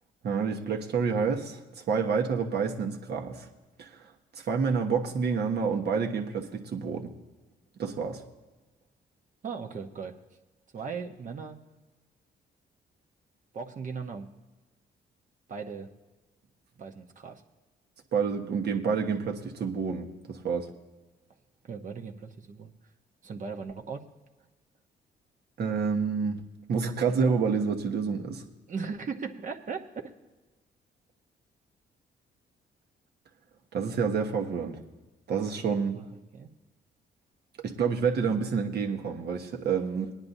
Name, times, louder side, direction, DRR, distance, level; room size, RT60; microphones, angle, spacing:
voice 1, 0.2-3.5 3.8-7.1 7.8-8.2 18.1-20.7 25.6-26.4 26.7-28.4 33.7-34.8 35.3-36.0 37.6-40.1, right 5 dB, 65° right, 2 dB, 1.3 m, -28 dB
voice 2, 9.4-10.1 10.7-11.6 13.5-14.3 15.5-15.9 16.8-17.4 21.6-22.7 23.2-24.0 28.7-29.9 35.9-36.0 36.3-36.5, right 5 dB, 45° right, 4 dB, 1.0 m, -37 dB
18.5 x 10.5 x 2.7 m, 1.2 s
cardioid pair, 95°, 18 cm